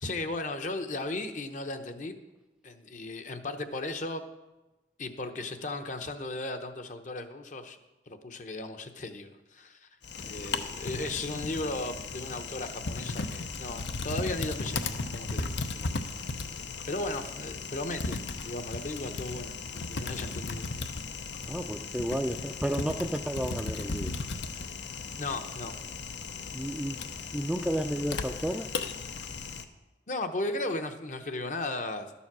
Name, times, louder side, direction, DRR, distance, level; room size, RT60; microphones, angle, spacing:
voice 1, 0.0-2.2 2.6-4.2 5.0-7.8 8.1-9.9 10.2-16.0 16.8-20.6 25.2-25.7 30.1-32.1, left 2 dB, 45° left, 7 dB, 0.8 m, -36 dB
Typing, 10.0-29.6, left 4 dB, 85° left, 0.7 m, -36 dB
voice 2, 21.5-24.2 26.5-27.0 27.3-28.7, equal, 5° right, 5 dB, 0.4 m, -32 dB
12.5 x 7.1 x 6.0 m, 1.1 s
head